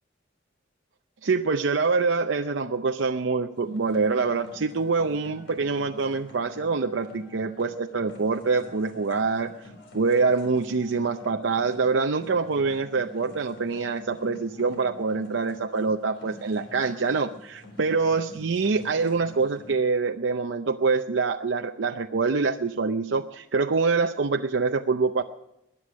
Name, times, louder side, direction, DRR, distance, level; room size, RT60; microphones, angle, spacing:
voice 1, 1.2-9.5 9.9-25.2, right 4 dB, 80° right, 5 dB, 0.6 m, -25 dB
sound 1, 3.6-19.7, left 1 dB, 75° left, 3.9 m, -47 dB
20.5 x 10.0 x 6.3 m, 0.88 s
head